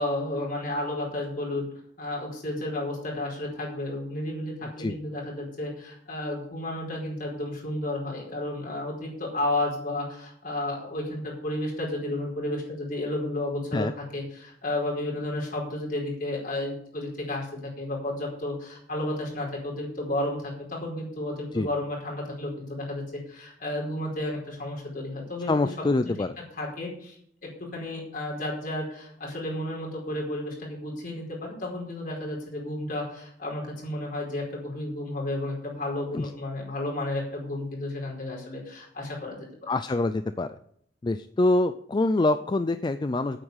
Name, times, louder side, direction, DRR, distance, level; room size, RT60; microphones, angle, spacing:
voice 1, 0.0-1.7 2.0-26.1 26.5-27.2 27.4-39.7, left 1 dB, 50° left, -2 dB, 4.8 m, -32 dB
voice 2, 25.5-26.4 36.1-36.3 39.7-40.6 41.0-43.4, left 2 dB, 25° left, 11 dB, 0.4 m, -25 dB
9.0 x 8.0 x 8.1 m, 0.68 s
head